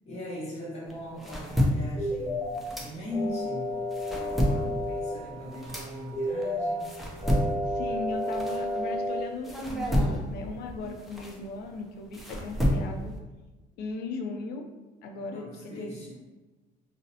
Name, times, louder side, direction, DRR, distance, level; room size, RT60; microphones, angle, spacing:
voice 1, 0.0-3.8 4.1-7.0 15.3-16.2, left 1 dB, 40° left, -6 dB, 1.0 m, -39 dB
sound 1, 0.9-3.4 3.8-9.1 9.4-13.2, equal, ahead, 0.4 m, -30 dB
sound 2, 2.0-2.6 3.1-5.1 6.1-6.7 7.2-9.2, left 1 dB, 15° right, 1.0 m, -31 dB
sound 3, 3.1-10.0, right 3 dB, 40° right, 0.7 m, -48 dB
voice 2, 7.7-13.1 13.8-14.7 15.0-15.9, left 3 dB, 70° left, 3 dB, 0.4 m, -37 dB
2.6 x 2.0 x 2.7 m, 1.2 s
cardioid pair, 110°, 17 cm